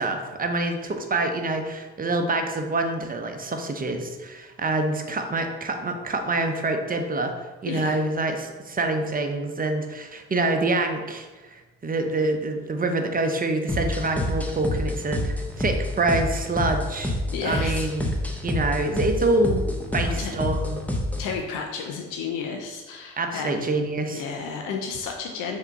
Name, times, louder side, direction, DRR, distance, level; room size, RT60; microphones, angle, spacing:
voice 1, 0.0-7.3 7.6-17.2 17.4-18.1 18.4-19.6 19.9-20.8 23.2-24.2, right 2 dB, 25° right, 4 dB, 0.7 m, -26 dB
voice 2, 7.7-8.0 17.3-17.9 20.0-20.3 21.2-23.6 24.1-25.6, left 5 dB, 75° left, 2 dB, 0.6 m, -32 dB
sound 1, 13.7-21.4, left 1 dB, 5° left, 0.7 m, -28 dB
3.5 x 2.8 x 4.6 m, 1.2 s
supercardioid pair, 50°, 32 cm